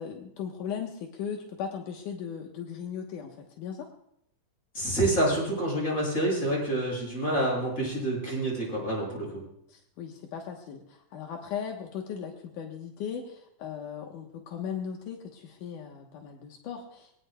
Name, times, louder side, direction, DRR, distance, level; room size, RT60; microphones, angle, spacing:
voice 1, 0.0-3.9 9.7-17.2, left 7 dB, 80° left, 1 dB, 2.7 m, -38 dB
voice 2, 4.7-9.3, right 1 dB, 25° left, -3 dB, 7.3 m, -27 dB
24.5 x 17.5 x 2.3 m, 0.73 s
omnidirectional pair, 3.6 m